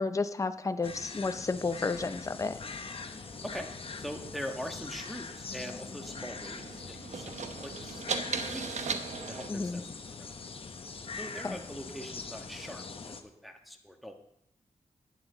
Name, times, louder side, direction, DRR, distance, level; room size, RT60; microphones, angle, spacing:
voice 1, 0.0-2.6 9.5-9.8 11.4-11.5, left 3 dB, 25° left, 10 dB, 0.5 m, -32 dB
sound 1, 0.8-13.2, left 4 dB, 50° left, 0.8 m, -43 dB
sound 2, 2.8-9.5, right 5 dB, 70° right, 0.9 m, -40 dB
voice 2, 4.0-7.3 7.6-8.9 9.3-10.3 11.1-14.1, equal, ahead, 4 dB, 1.4 m, -42 dB
11.0 x 9.2 x 3.9 m, 0.76 s
cardioid pair, 75°, 12 cm